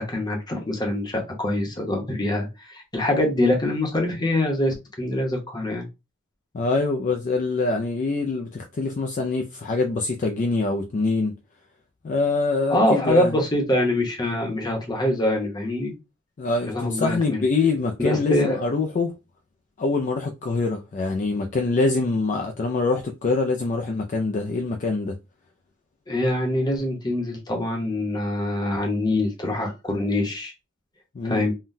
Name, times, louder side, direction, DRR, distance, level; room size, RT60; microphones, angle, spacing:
voice 1, 0.0-5.9 12.7-15.9 16.7-17.4 18.0-18.6 26.1-30.5 31.2-31.5, left 1 dB, 20° left, 0.8 m, -24 dB
voice 2, 6.5-11.3 12.0-13.4 16.4-19.1 19.8-25.2 31.2-31.5, left 3 dB, 40° left, 0.3 m, -24 dB
3.7 x 2.2 x 2.6 m
head